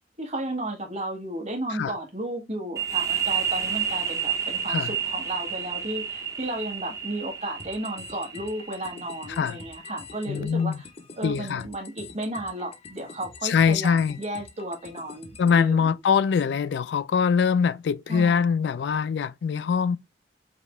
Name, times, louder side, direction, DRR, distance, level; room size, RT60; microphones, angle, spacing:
voice 1, 0.2-10.8 11.2-15.9 18.1-18.5, right 1 dB, 35° right, 1.5 m, -33 dB
sound 1, 2.8-10.2, right 8 dB, 20° right, 0.7 m, -31 dB
sound 2, 7.6-15.6, left 4 dB, 35° left, 0.6 m, -46 dB
voice 2, 10.3-10.8 11.2-11.6 13.4-14.2 15.4-20.0, left 6 dB, 70° left, 0.3 m, -23 dB
5.1 x 2.9 x 3.0 m
head